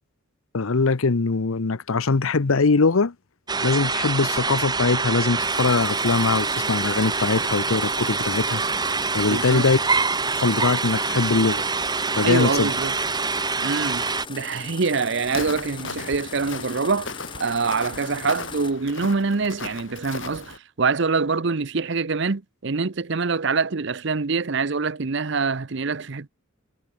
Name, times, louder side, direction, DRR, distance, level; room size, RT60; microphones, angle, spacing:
voice 1, 0.5-3.1 3.6-8.6 9.1-9.8 10.4-11.6 12.2-12.7, left 4 dB, 85° left, 0.8 m, -22 dB
sound 1, 3.5-14.3, right 4 dB, 20° right, 1.4 m, -25 dB
sound 2, 5.4-18.7, left 5 dB, 25° left, 1.7 m, -39 dB
voice 2, 9.3-9.7 12.2-12.9 13.6-26.3, right 4 dB, 60° right, 0.8 m, -25 dB
Walk footsteps, 15.2-20.6, left 4 dB, 65° left, 7.7 m, -37 dB
head